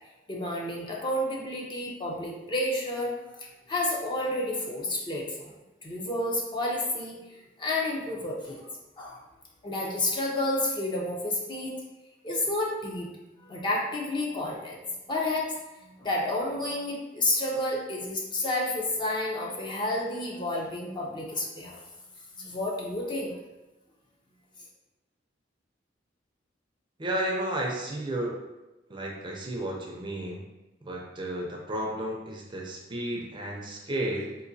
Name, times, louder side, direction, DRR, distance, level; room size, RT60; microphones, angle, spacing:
voice 1, 0.3-5.5 5.8-8.7 9.0-9.2 9.6-11.7 12.2-21.8 22.3-23.4, left 1 dB, 25° left, -2 dB, 0.5 m, -30 dB
voice 2, 27.0-28.4 28.9-30.4 30.8-34.4, right 1 dB, 25° right, -1 dB, 0.5 m, -32 dB
3.9 x 2.6 x 2.6 m, 1.0 s
head